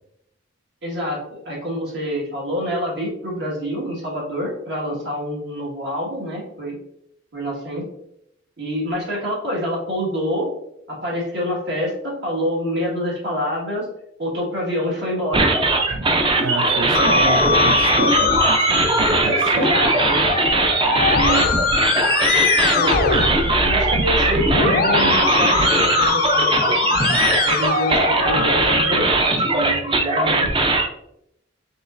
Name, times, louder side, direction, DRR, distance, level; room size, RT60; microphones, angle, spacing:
voice 1, 0.8-6.8 7.3-7.8 8.6-10.5 10.9-13.9 14.2-15.5 15.9-16.2 16.8-17.5 19.5-20.2 21.0-22.1 22.7-23.2 23.6-26.9 27.4-30.5, equal, 65° right, 1.6 m, -27 dB
sound 1, 15.3-30.9, right 2 dB, 25° right, 0.4 m, -19 dB
voice 2, 16.4-19.7 21.3-21.5, right 4 dB, 85° right, 0.4 m, -29 dB
Musical instrument, 16.9-28.9, left 5 dB, 50° left, 0.4 m, -22 dB
5.2 x 3.0 x 2.5 m
head